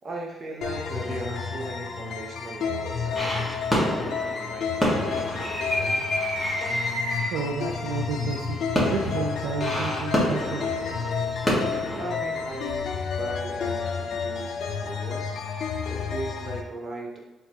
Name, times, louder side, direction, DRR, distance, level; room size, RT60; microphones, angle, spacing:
voice 1, 0.0-6.1 11.3-15.4 15.9-17.3, right 2 dB, 40° right, 0 dB, 1.0 m, -38 dB
sound 1, 0.6-16.6, left 6 dB, 65° left, 0.5 m, -31 dB
sound 2, 3.2-12.9, equal, 5° right, 1.5 m, -28 dB
voice 2, 7.3-10.9, right 6 dB, 85° right, 1 dB, 0.4 m, -32 dB
4.4 x 3.8 x 2.9 m, 1.1 s
cardioid pair, 90°, 0 cm